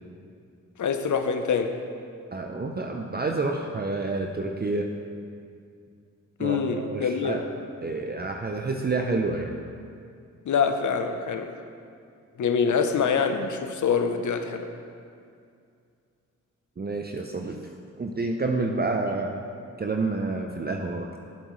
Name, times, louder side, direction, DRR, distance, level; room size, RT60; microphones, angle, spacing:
voice 1, 0.8-1.7 6.4-7.4 10.5-11.5 12.4-14.7, left 6 dB, 65° left, 7 dB, 0.8 m, -25 dB
voice 2, 2.3-4.9 6.4-7.4 7.8-9.5 16.8-17.7 18.0-19.4 19.8-21.1, right 3 dB, 30° right, 3 dB, 0.7 m, -29 dB
12.0 x 7.9 x 3.2 m, 2.4 s
supercardioid pair, 45°, 33 cm